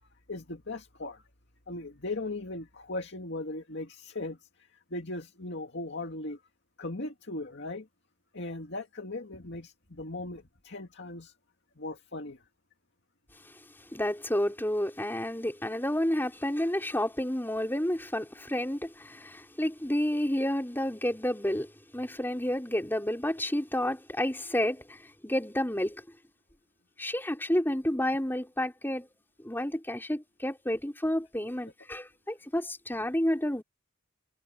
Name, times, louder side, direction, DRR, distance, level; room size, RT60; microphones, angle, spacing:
voice 1, 0.3-1.2 1.7-4.5 4.9-6.4 6.8-7.9 8.3-11.3 11.8-12.4, left 2 dB, 55° left, 2.3 m, -38 dB
voice 2, 13.9-26.0 27.0-29.1 29.4-33.6, left 1 dB, 10° left, 4.3 m, -30 dB
head